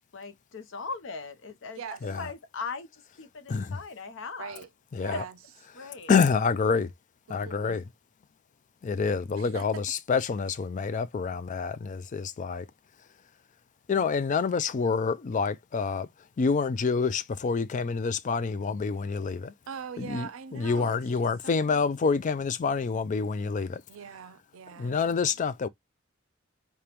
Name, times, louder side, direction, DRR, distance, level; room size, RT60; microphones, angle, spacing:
voice 1, 0.1-4.6 5.1-5.2 5.7-6.1, left 4 dB, 65° left, 0.7 m, -39 dB
voice 2, 1.7-2.2 4.4-4.7 5.0-5.4 7.3-7.8 9.3-9.8 19.7-21.8 23.9-25.0, right 7 dB, 85° right, 0.4 m, -42 dB
voice 3, 4.9-5.2 6.1-6.9 7.3-7.8 8.8-12.6 13.9-16.1 16.4-19.5 20.0-23.8 24.8-25.7, left 5 dB, 40° left, 0.4 m, -27 dB
5.0 x 2.2 x 2.9 m
head